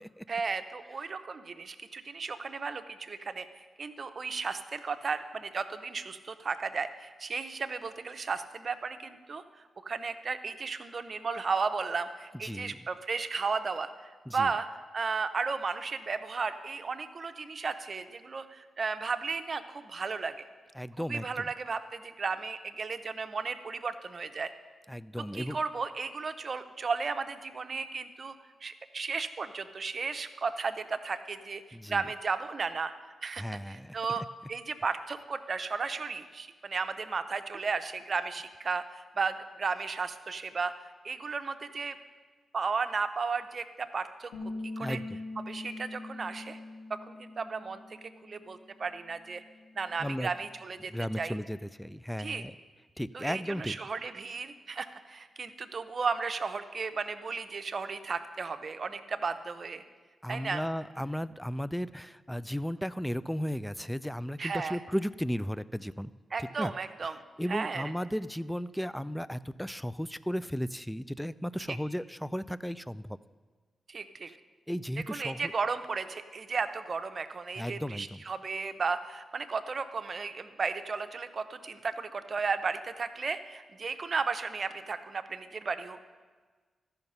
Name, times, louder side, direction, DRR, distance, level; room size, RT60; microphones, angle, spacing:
voice 1, 0.3-9.4 9.8-14.7 14.9-20.3 21.0-24.5 25.3-28.3 28.6-31.6 31.9-32.9 33.2-42.0 42.5-44.3 44.8-45.0 45.5-46.6 47.1-49.4 49.8-51.3 52.2-52.4 53.1-59.8 60.3-60.6 64.4-64.8 66.3-67.2 67.5-67.9 71.7-71.8 73.9-74.3 75.1-86.0, right 4 dB, 55° right, 9 dB, 0.7 m, -34 dB
voice 2, 12.4-12.8 14.3-14.5 20.8-21.5 24.9-25.6 31.7-32.0 33.4-34.0 44.8-45.0 50.0-50.3 50.9-52.5 53.0-53.8 60.2-66.1 66.6-66.7 67.4-73.2 74.7-75.5 77.6-78.2, equal, 5° left, 17 dB, 0.4 m, -35 dB
Bass guitar, 44.3-50.6, left 2 dB, 85° left, 1.3 m, -43 dB
13.5 x 5.8 x 5.4 m, 1.4 s
supercardioid pair, 40°, 0 cm